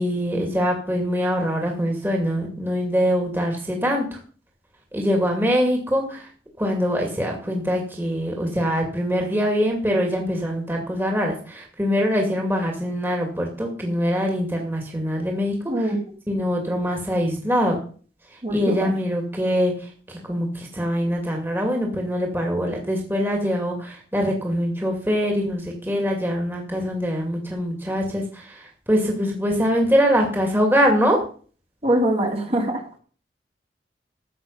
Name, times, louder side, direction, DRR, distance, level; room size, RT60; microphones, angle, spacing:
voice 1, 0.0-4.2 4.9-6.3 6.6-15.9 16.3-17.8 18.5-31.2, equal, 15° right, 1 dB, 2.5 m, -23 dB
voice 2, 18.4-18.9 31.8-32.8, right 1 dB, 35° right, 1 dB, 2.8 m, -22 dB
14.5 x 8.3 x 5.6 m, 0.42 s
head